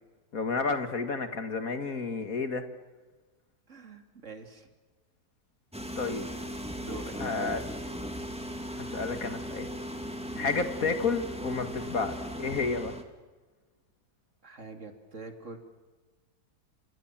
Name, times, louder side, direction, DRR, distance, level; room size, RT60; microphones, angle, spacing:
voice 1, 0.3-2.6 6.0-6.3 7.2-7.6 8.8-9.7 10.4-12.9, left 4 dB, 60° left, 8 dB, 2.4 m, -31 dB
voice 2, 3.7-4.7 6.8-7.4 10.3-10.6 14.4-15.6, right 3 dB, 50° right, 5 dB, 3.0 m, -44 dB
sound 1, 5.7-13.0, equal, 5° right, 2.3 m, -38 dB
30.0 x 26.5 x 7.5 m, 1.3 s
omnidirectional pair, 1.7 m